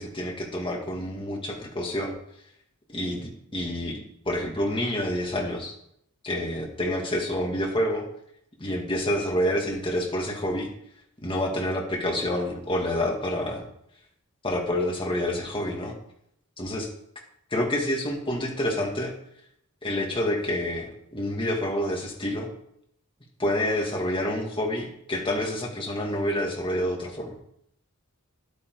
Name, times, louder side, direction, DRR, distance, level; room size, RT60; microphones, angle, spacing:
voice 1, 0.0-2.1 2.9-5.7 6.2-8.0 8.6-10.7 11.2-13.6 14.4-15.9 16.6-16.9 17.5-19.1 19.8-22.5 23.4-27.4, left 1 dB, 25° left, 0 dB, 2.0 m, -28 dB
11.0 x 8.7 x 4.7 m, 0.73 s
head